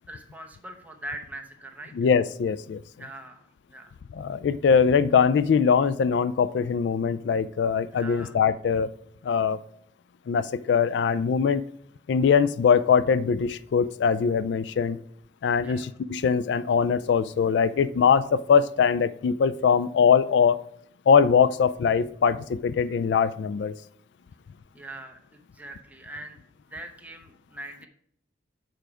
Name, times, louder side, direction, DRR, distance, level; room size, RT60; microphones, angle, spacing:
voice 1, 0.1-2.1 2.9-3.9 7.9-8.4 15.6-16.0 24.7-26.4 26.7-27.9, right 1 dB, 10° right, 3 dB, 0.9 m, -42 dB
voice 2, 2.0-2.8 4.1-8.9 9.2-9.6 10.3-11.6 12.1-15.0 15.4-20.6 21.1-23.7, left 6 dB, 65° left, 15 dB, 0.3 m, -22 dB
6.9 x 4.6 x 4.9 m, 0.68 s
head